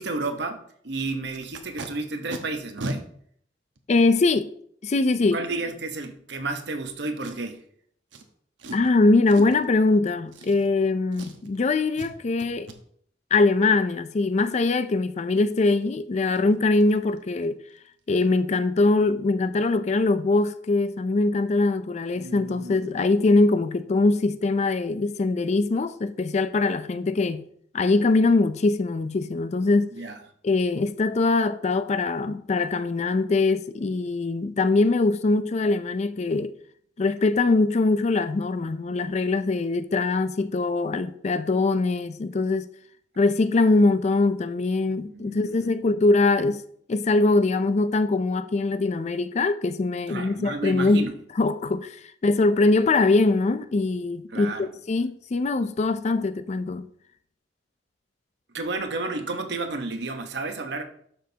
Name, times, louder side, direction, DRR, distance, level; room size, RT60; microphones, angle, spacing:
voice 1, 0.0-3.1 5.3-7.6 22.2-22.8 29.9-30.2 45.0-45.7 50.1-51.1 54.3-54.7 58.5-60.8, right 3 dB, 65° right, 1.0 m, -32 dB
Packing tape duct tape, 1.3-1.9 2.3-2.4 2.8-3.0 3.8-3.9 7.2-7.6 8.1-8.2 8.6-8.9 9.3-9.7 10.3-10.8 11.1-11.6 11.9-12.1 12.4-12.8 15.8-15.9 16.2-16.4 16.7-16.9 17.2-17.4 17.7-17.8, right 1 dB, 90° right, 1.1 m, -36 dB
voice 2, 3.9-4.5 4.8-5.4 8.7-12.7 13.3-17.6 18.1-27.5 27.7-29.9 30.4-36.5 37.0-42.7 43.2-46.6 46.9-51.1 51.4-52.0 52.2-54.5 54.9-56.9, left 3 dB, 40° left, 0.4 m, -22 dB
12.0 x 6.2 x 2.8 m
head